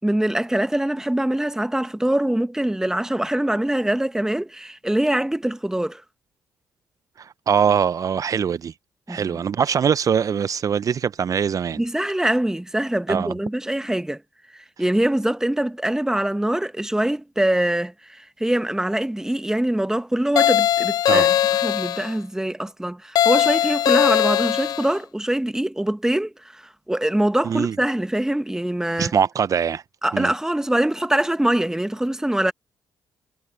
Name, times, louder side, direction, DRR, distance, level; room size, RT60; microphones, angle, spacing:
voice 1, 0.0-6.0 9.1-9.4 11.8-14.2 14.5-21.3 21.6-29.1 30.0-32.5, right 1 dB, 5° right, 1.5 m, -23 dB
voice 2, 7.2-8.7 9.1-11.8 13.1-13.3 21.1-21.3 27.4-27.8 29.0-29.8 30.1-30.3, right 7 dB, 50° right, 0.7 m, -22 dB
sound 1, 20.4-22.1 23.2-24.9, left 12 dB, 60° left, 0.4 m, -19 dB
hypercardioid pair, 50°, 7 cm